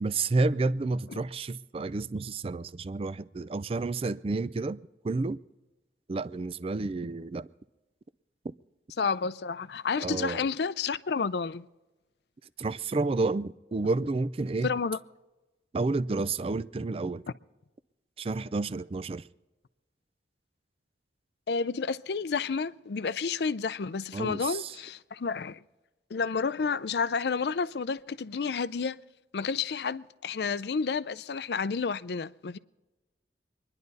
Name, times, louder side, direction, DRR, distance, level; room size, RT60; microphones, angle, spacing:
voice 1, 0.0-4.8 5.0-5.4 6.1-7.5 10.0-10.5 12.6-14.7 15.7-17.2 18.2-19.3 24.1-24.8, right 3 dB, 35° right, 0.4 m, -30 dB
voice 2, 9.0-11.6 14.6-15.0 21.5-25.6 26.1-29.0 29.3-32.6, left 5 dB, 65° left, 0.5 m, -30 dB
25.5 x 11.0 x 4.1 m
head